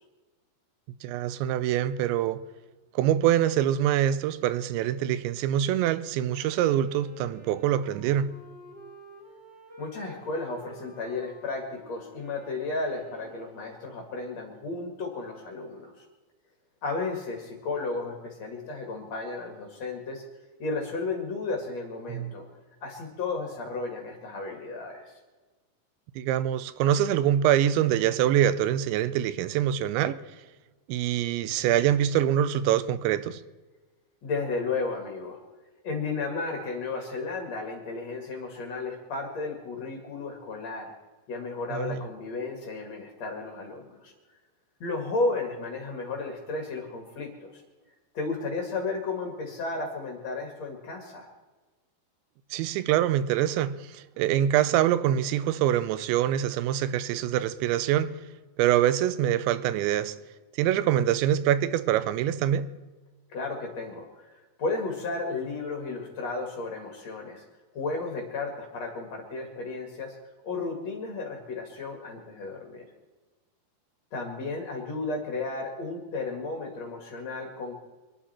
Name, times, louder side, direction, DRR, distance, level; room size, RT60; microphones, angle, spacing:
voice 1, 1.0-2.4 3.0-8.3 22.1-22.3 26.2-30.2 30.9-33.4 41.7-42.0 52.5-58.2 58.6-60.2 60.6-62.7, right 11 dB, 90° right, 3.0 m, -25 dB
Wind instrument woodwind instrument, 6.2-14.8, equal, 25° right, 3.8 m, -51 dB
voice 2, 9.8-15.9 16.8-20.2 20.6-22.4 22.8-25.1 34.2-35.4 35.8-40.9 41.3-44.1 44.8-47.6 48.1-51.3 63.3-64.3 64.6-67.4 67.7-70.2 70.4-72.8 74.1-77.7, left 3 dB, 45° left, 2.7 m, -33 dB
25.5 x 11.5 x 4.4 m
omnidirectional pair, 5.1 m